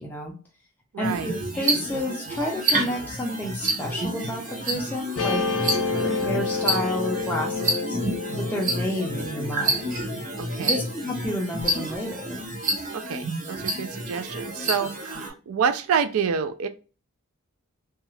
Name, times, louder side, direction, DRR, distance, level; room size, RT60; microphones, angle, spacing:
voice 1, 0.0-0.3 1.0-5.5 5.9-8.0 8.4-10.0 10.6-12.4, left 1 dB, 10° left, -2 dB, 0.4 m, -30 dB
voice 2, 0.9-1.3 10.4-10.8 12.9-16.7, right 7 dB, 80° right, 11 dB, 0.4 m, -28 dB
sound 1, 1.0-15.3, right 1 dB, 35° right, 0.7 m, -29 dB
Guitar, 5.2-11.6, left 4 dB, 70° left, 0.6 m, -30 dB
2.8 x 2.3 x 3.1 m, 0.35 s
head